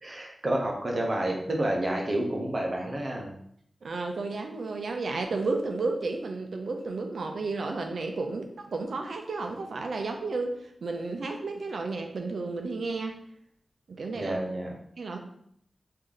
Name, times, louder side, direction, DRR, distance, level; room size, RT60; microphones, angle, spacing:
voice 1, 0.0-3.3 14.1-14.8, right 1 dB, 40° right, 0 dB, 0.8 m, -29 dB
voice 2, 3.8-10.5 10.8-13.2 13.9-14.4 15.0-15.2, right 3 dB, 80° right, 4 dB, 0.5 m, -32 dB
3.2 x 2.7 x 3.8 m, 0.68 s
wide cardioid pair, 100°, 0 cm